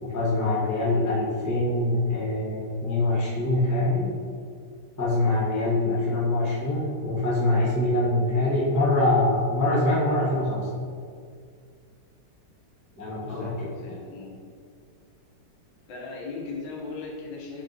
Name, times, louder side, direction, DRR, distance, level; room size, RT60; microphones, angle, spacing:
voice 1, 0.0-4.1 5.0-10.7 13.0-13.7, left 2 dB, 15° left, -7 dB, 0.6 m, -24 dB
voice 2, 13.3-14.3 15.9-17.6, left 3 dB, 85° left, -3 dB, 1.6 m, -38 dB
4.6 x 2.6 x 3.8 m, 2.1 s
omnidirectional pair, 2.0 m